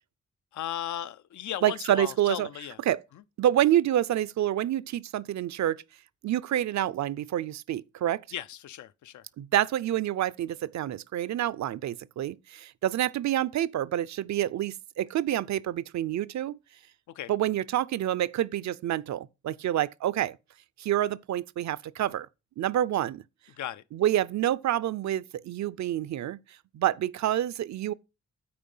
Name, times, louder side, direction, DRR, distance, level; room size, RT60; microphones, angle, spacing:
voice 1, 0.5-2.8 3.1-3.2 8.3-9.3 17.1-17.3 23.6-23.8, left 11 dB, 75° left, 0.5 m, -36 dB
voice 2, 1.6-2.5 2.9-3.0 3.4-5.8 6.2-8.2 9.4-16.6 17.3-20.4 20.8-22.3 22.6-23.2 23.9-26.4 26.7-27.9, right 12 dB, 70° right, 0.5 m, -27 dB
8.6 x 4.7 x 5.4 m
wide cardioid pair, 170°, 29 cm